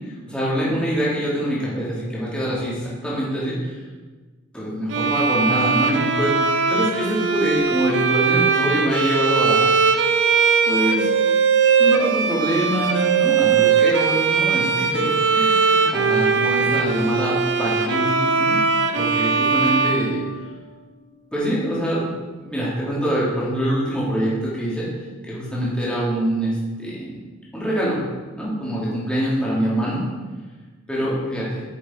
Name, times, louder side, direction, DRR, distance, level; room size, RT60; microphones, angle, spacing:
voice 1, 0.3-3.6 4.5-9.7 10.7-11.1 11.8-18.6 18.9-20.2 21.3-22.1 22.4-24.9 25.3-27.1 27.5-28.0 28.4-30.0 30.9-31.6, equal, 5° left, -8 dB, 2.6 m, -24 dB
Bowed string instrument, 4.9-20.8, right 5 dB, 60° right, 0.7 m, -20 dB
8.7 x 6.9 x 4.4 m, 1.3 s
head